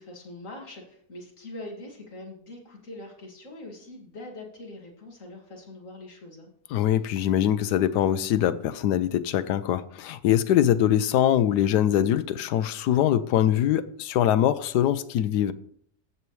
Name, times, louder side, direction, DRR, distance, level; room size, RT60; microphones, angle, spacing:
voice 1, 0.0-6.5, left 2 dB, 50° left, 2.6 m, -43 dB
voice 2, 6.7-15.5, left 11 dB, 85° left, 1.2 m, -23 dB
14.5 x 6.9 x 3.2 m
omnidirectional pair, 1.7 m